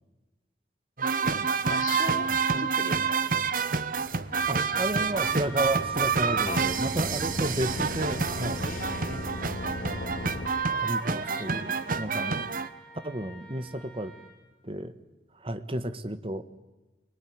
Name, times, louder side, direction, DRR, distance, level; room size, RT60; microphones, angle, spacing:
sound 1, 1.0-12.7, right 5 dB, 50° right, 1.1 m, -28 dB
voice 1, 1.3-3.2 4.4-4.7 6.5-6.7 8.6-9.5 11.3-11.4, left 4 dB, 50° left, 10 dB, 1.5 m, -40 dB
sound 2, 3.9-10.5, left 1 dB, 70° left, 3.0 m, -38 dB
voice 2, 4.5-8.6 10.8-12.6 13.0-14.1 14.6-15.0 15.4-16.4, right 1 dB, 30° right, 10 dB, 1.5 m, -32 dB
Trumpet, 5.1-14.5, left 1 dB, 5° left, 5.5 m, -48 dB
24.0 x 21.5 x 9.6 m, 1.1 s
head